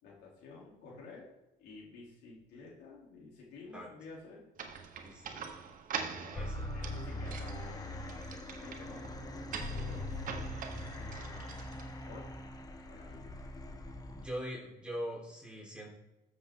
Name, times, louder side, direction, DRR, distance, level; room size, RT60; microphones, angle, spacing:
voice 1, 0.0-1.3 1.6-4.4 6.2-6.5 6.7-11.7 12.0-12.5 12.9-13.3, left 3 dB, 85° left, -3 dB, 3.5 m, -52 dB
sound 1, 4.6-12.2, right 6 dB, 55° right, 1.2 m, -44 dB
voice 2, 5.0-5.5 6.3-6.7 14.1-15.9, equal, 5° right, -3 dB, 4.1 m, -42 dB
sound 2, 6.3-14.3, left 1 dB, 20° left, 1.2 m, -42 dB
13.0 x 6.6 x 3.8 m, 0.97 s
cardioid pair, 110°, 17 cm